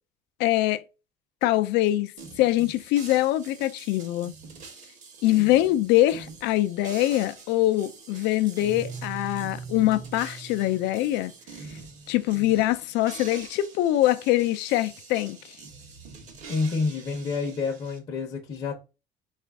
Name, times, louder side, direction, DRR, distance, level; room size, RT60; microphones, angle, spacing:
voice 1, 0.4-0.8 1.4-2.1 2.4-4.3 5.2-11.3 12.1-15.4, left 15 dB, 70° left, 0.4 m, -23 dB
sound 1, 2.2-18.0, right 5 dB, 45° right, 0.9 m, -45 dB
Guitar, 8.6-11.2, right 5 dB, 15° right, 0.4 m, -40 dB
voice 2, 16.5-18.7, left 4 dB, 30° left, 0.7 m, -28 dB
4.8 x 2.4 x 3.4 m
cardioid pair, 180°, 18 cm